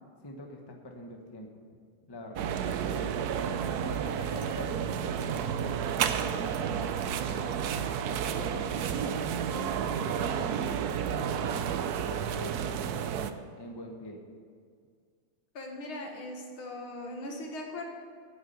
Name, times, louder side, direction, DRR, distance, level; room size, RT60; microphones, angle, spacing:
voice 1, 0.2-1.6 2.1-3.2 3.8-10.6 11.0-13.1 13.6-14.2, left 1 dB, 15° left, 2 dB, 1.0 m, -44 dB
sound 1, 2.4-13.3, right 8 dB, 75° right, 0.8 m, -31 dB
voice 2, 15.5-17.9, left 1 dB, 75° left, 1 dB, 2.6 m, -39 dB
9.7 x 9.1 x 8.2 m, 2.1 s
omnidirectional pair, 2.4 m